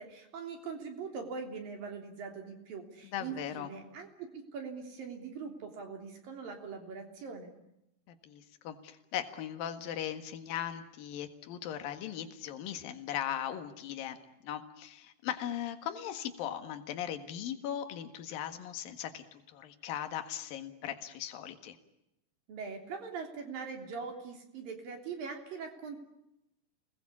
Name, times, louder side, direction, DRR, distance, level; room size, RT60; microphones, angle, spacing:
voice 1, 0.0-7.5 22.5-26.0, right 5 dB, 60° right, 4 dB, 4.9 m, -42 dB
voice 2, 3.1-3.7 8.1-21.8, left 10 dB, 65° left, 7 dB, 3.3 m, -39 dB
29.0 x 21.0 x 8.5 m, 0.86 s
omnidirectional pair, 4.5 m